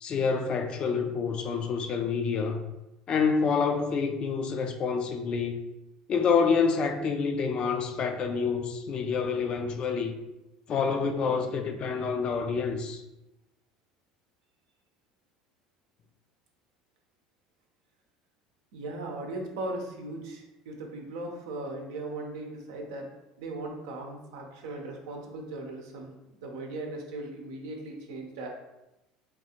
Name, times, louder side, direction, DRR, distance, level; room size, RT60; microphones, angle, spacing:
voice 1, 0.0-2.6 3.1-5.5 6.1-10.1 10.7-13.0, left 5 dB, 45° left, 0.4 m, -27 dB
voice 2, 18.7-23.1 23.4-28.5, right 2 dB, 75° right, 0.6 m, -38 dB
3.6 x 2.4 x 2.8 m
hypercardioid pair, 80°, 2 cm